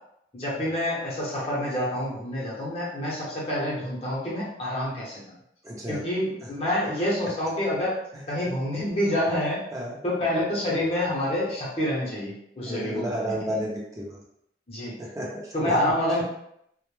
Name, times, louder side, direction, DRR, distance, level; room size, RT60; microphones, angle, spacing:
voice 1, 0.3-5.2 5.9-7.9 8.3-9.6 10.0-13.4 14.7-14.9 15.5-16.2, left 1 dB, 35° left, -6 dB, 0.7 m, -27 dB
voice 2, 5.6-6.0 9.7-10.0 12.7-14.2 15.0-15.8, equal, 20° right, -4 dB, 0.6 m, -31 dB
2.1 x 2.1 x 3.0 m, 0.77 s
head